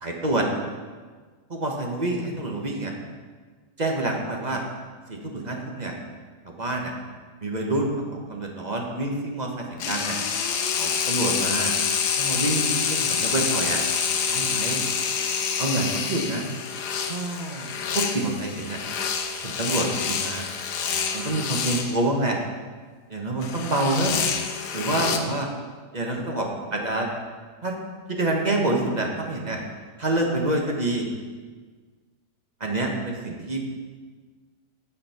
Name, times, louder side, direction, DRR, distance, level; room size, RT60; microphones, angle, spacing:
voice 1, 0.0-0.5 1.5-2.9 3.8-4.6 5.1-5.9 6.4-6.9 7.4-8.0 8.3-10.2 10.8-11.7 12.2-13.8 14.3-14.8 15.6-16.5 17.1-18.8 19.4-20.5 21.1-22.4 23.1-24.1 24.7-25.5 25.9-27.1 27.6-27.7 28.1-29.6 30.0-31.1 32.6-33.6, right 2 dB, 30° right, 1 dB, 1.2 m, -27 dB
sound 1, 9.8-21.9 23.4-25.2, left 6 dB, 75° left, 1.4 m, -27 dB
9.3 x 7.3 x 5.7 m, 1.5 s
omnidirectional pair, 1.8 m